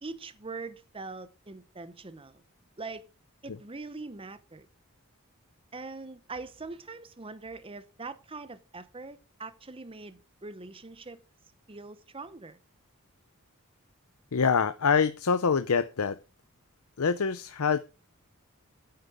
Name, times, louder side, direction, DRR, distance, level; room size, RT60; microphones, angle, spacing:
voice 1, 0.0-2.4 2.8-3.0 3.4-4.7 5.7-11.2 11.7-12.6, right 3 dB, 25° right, 0.8 m, -42 dB
voice 2, 14.3-16.2 17.0-17.8, left 5 dB, 85° left, 0.6 m, -25 dB
9.5 x 8.2 x 4.9 m
head